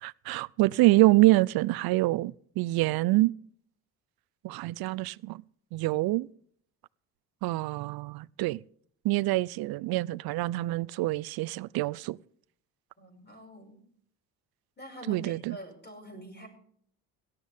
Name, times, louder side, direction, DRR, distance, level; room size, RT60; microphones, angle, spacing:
voice 1, 0.0-3.3 4.4-5.4 5.7-6.3 7.4-8.6 9.0-12.2 15.1-15.6, right 19 dB, 60° right, 0.5 m, -26 dB
voice 2, 13.0-13.8 14.8-16.5, equal, 25° left, 5.8 m, -45 dB
17.0 x 12.5 x 3.5 m
supercardioid pair, 80°, 42 cm